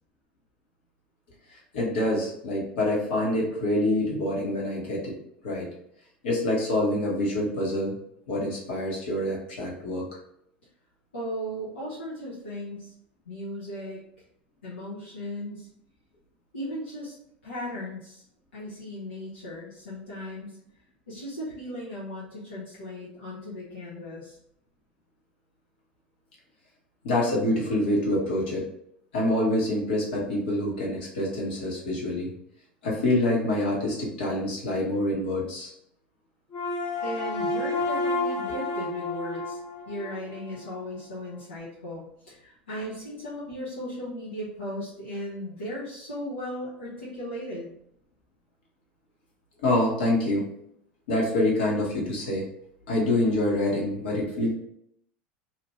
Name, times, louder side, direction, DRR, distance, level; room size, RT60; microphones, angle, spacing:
voice 1, 1.7-5.1 5.4-5.7 6.2-7.9 8.3-10.1 27.0-28.7 29.1-32.3 32.8-35.7 49.6-50.4 51.1-52.5 52.9-54.5, left 1 dB, 75° left, -3 dB, 1.3 m, -26 dB
voice 2, 11.1-12.9 13.3-14.0 14.6-15.7 16.5-17.1 17.4-18.2 18.5-20.6 21.1-24.4 37.0-39.6 39.9-47.7, equal, 90° left, -9 dB, 0.9 m, -36 dB
sound 1, 36.5-40.8, left 2 dB, 45° left, 1.1 m, -30 dB
2.9 x 2.6 x 3.0 m, 0.73 s
hypercardioid pair, 80°, 5 cm